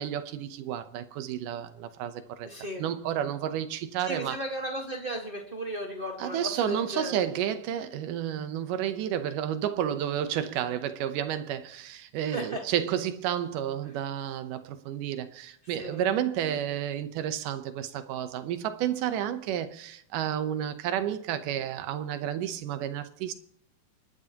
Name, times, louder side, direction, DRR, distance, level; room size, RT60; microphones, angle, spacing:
voice 1, 0.0-2.5 2.8-4.4 6.2-23.3, right 10 dB, 85° right, 2.5 m, -31 dB
voice 2, 2.4-2.8 4.0-7.2 12.3-12.6 15.8-16.0, equal, 40° right, 0.7 m, -35 dB
27.0 x 11.0 x 2.9 m
omnidirectional pair, 3.6 m